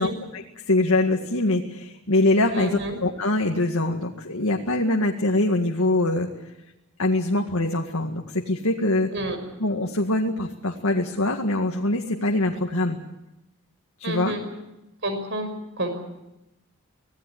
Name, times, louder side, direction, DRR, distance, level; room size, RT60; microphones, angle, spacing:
voice 1, 0.0-2.7 3.0-6.3 7.0-9.1 9.6-13.0 14.0-14.4, left 2 dB, 75° left, 2 dB, 2.0 m, -23 dB
voice 2, 2.5-3.0 9.1-9.4 14.0-14.4 15.0-15.5 15.8-16.0, right 1 dB, 55° right, 7 dB, 6.0 m, -29 dB
25.5 x 19.0 x 8.6 m, 0.92 s
head